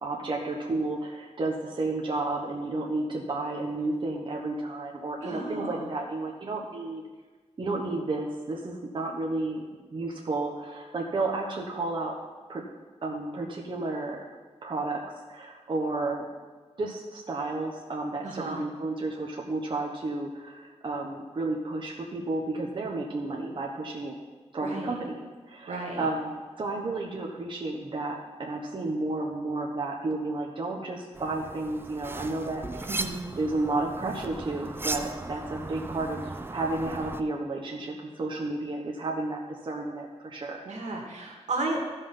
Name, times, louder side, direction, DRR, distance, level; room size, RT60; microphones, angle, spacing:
voice 1, 0.0-7.0 7.6-9.6 9.9-12.1 12.5-12.6 13.0-14.3 14.6-15.0 15.3-16.2 16.8-24.2 24.5-25.2 25.5-32.9 33.4-40.6, right 2 dB, 45° right, -2 dB, 1.2 m, -32 dB
voice 2, 5.2-5.9 18.2-18.6 24.6-25.0 25.7-26.0 32.9-33.3 40.6-41.8, right 2 dB, 90° right, 0 dB, 2.1 m, -33 dB
sound 1, 31.1-37.2, right 2 dB, 20° right, 0.5 m, -37 dB
15.0 x 5.6 x 5.7 m, 1.4 s
wide cardioid pair, 150°, 12 cm